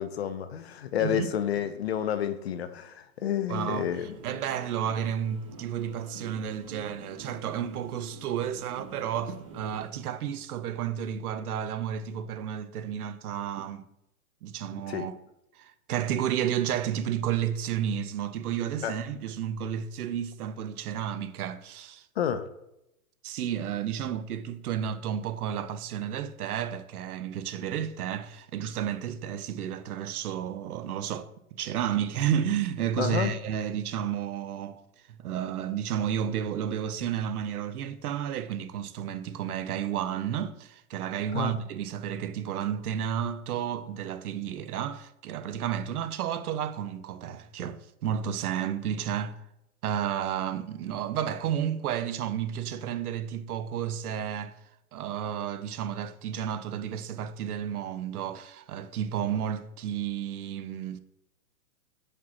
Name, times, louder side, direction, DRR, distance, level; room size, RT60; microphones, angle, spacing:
voice 1, 0.0-4.2 14.9-15.1 18.8-19.0 22.2-22.5 33.0-33.3 41.3-41.6, left 9 dB, 45° left, 0.4 m, -30 dB
voice 2, 3.5-13.9 14.4-15.1 15.6-22.1 23.2-34.8 35.1-49.4 49.8-54.6 54.9-61.0, right 9 dB, 75° right, 0.7 m, -32 dB
sound 1, 3.8-9.9, right 2 dB, 25° right, 0.5 m, -47 dB
5.2 x 4.1 x 5.9 m
hypercardioid pair, 160°, 44 cm